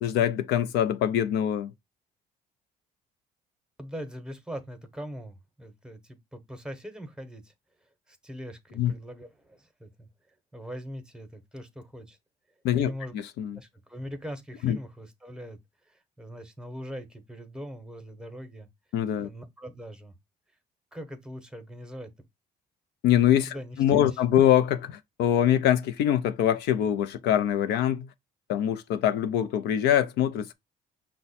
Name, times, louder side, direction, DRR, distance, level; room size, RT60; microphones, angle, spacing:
voice 1, 0.0-1.7 8.8-8.9 12.6-13.6 14.6-14.8 18.9-19.3 23.0-28.1 28.5-30.5, left 10 dB, 80° left, 0.5 m, -24 dB
voice 2, 3.8-7.5 8.1-10.1 10.5-12.2 12.8-13.1 13.6-15.6 15.9-18.7 19.2-20.1 20.9-22.1 23.5-24.2, equal, 5° right, 0.9 m, -41 dB
5.8 x 2.2 x 4.1 m
cardioid pair, 110°, 17 cm